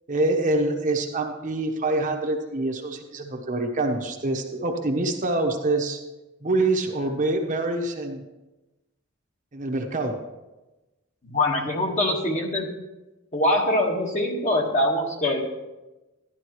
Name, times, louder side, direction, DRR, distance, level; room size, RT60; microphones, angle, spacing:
voice 1, 0.1-6.0 6.4-8.2 9.5-10.2, right 2 dB, 40° right, 2 dB, 1.0 m, -25 dB
voice 2, 11.2-12.7 13.3-15.4, left 1 dB, 40° left, 0 dB, 1.5 m, -23 dB
12.5 x 11.0 x 3.1 m, 1.1 s
head